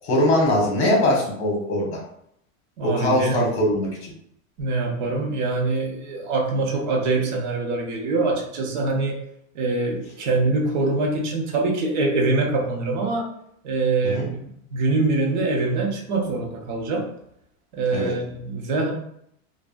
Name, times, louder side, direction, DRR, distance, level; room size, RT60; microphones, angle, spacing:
voice 1, 0.0-2.0 2.8-4.1 14.0-14.3 17.9-18.1, left 1 dB, 55° left, -2 dB, 1.4 m, -21 dB
voice 2, 2.8-3.4 4.6-9.2 9.5-13.3 13.6-17.0 17.7-18.9, right 3 dB, 35° right, 0 dB, 0.5 m, -24 dB
3.4 x 2.0 x 2.4 m, 0.72 s
supercardioid pair, 180°, 40 cm